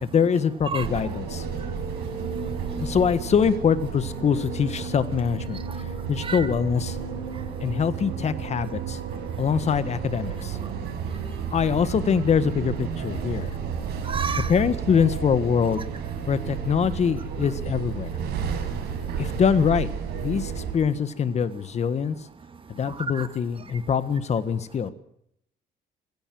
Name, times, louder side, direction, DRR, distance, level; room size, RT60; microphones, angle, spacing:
voice 1, 0.0-1.4 2.8-5.6 6.1-7.0 7.6-9.0 9.4-10.6 11.5-13.5 14.5-15.8 16.3-18.1 19.2-19.9 20.2-22.1 22.7-24.9, left 7 dB, 40° left, 13 dB, 1.7 m, -24 dB
sound 1, 0.8-20.7, right 7 dB, 75° right, 6.2 m, -32 dB
voice 2, 14.1-14.5 23.1-23.3, right 5 dB, 30° right, 11 dB, 1.9 m, -29 dB
20.0 x 17.0 x 7.8 m, 0.74 s
cardioid pair, 110°, 17 cm